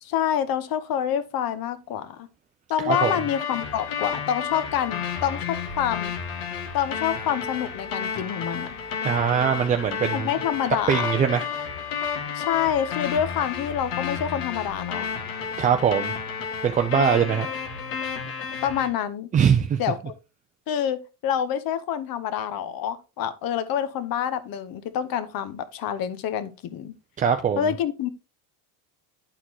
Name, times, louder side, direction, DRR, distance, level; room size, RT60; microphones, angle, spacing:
voice 1, 0.0-2.3 2.7-6.1 6.7-8.7 10.1-11.1 12.3-15.1 18.6-19.3 19.8-20.1 20.7-26.9 27.6-28.1, left 9 dB, 45° left, 1.0 m, -27 dB
voice 2, 2.8-3.1 9.0-10.3 10.9-11.5 15.6-16.1 16.6-17.5 19.3-19.8 27.2-27.6, right 7 dB, 20° right, 0.3 m, -22 dB
sound 1, 2.9-18.9, left 6 dB, 70° left, 1.9 m, -31 dB
11.0 x 4.3 x 2.9 m
supercardioid pair, 105°, 48 cm